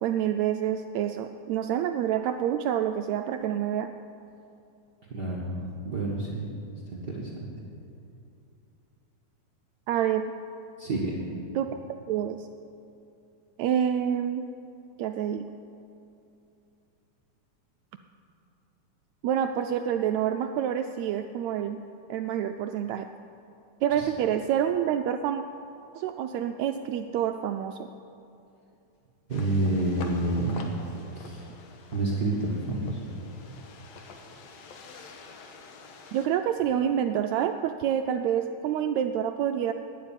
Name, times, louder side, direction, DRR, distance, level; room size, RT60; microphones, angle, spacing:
voice 1, 0.0-3.9 9.9-10.2 11.5-11.8 12.1-12.5 13.6-14.5 15.0-15.5 19.2-21.8 22.1-23.1 23.8-25.4 25.9-27.9 36.1-39.7, right 9 dB, 80° right, 7 dB, 1.6 m, -27 dB
voice 2, 5.1-6.5 6.9-7.5 10.8-11.2 24.0-24.1 29.3-30.6 31.1-31.4 31.9-33.0, right 2 dB, 40° right, -5 dB, 1.7 m, -29 dB
sound 1, 29.3-36.3, left 4 dB, 65° left, 2.2 m, -46 dB
12.5 x 10.5 x 8.8 m, 2.7 s
omnidirectional pair, 3.6 m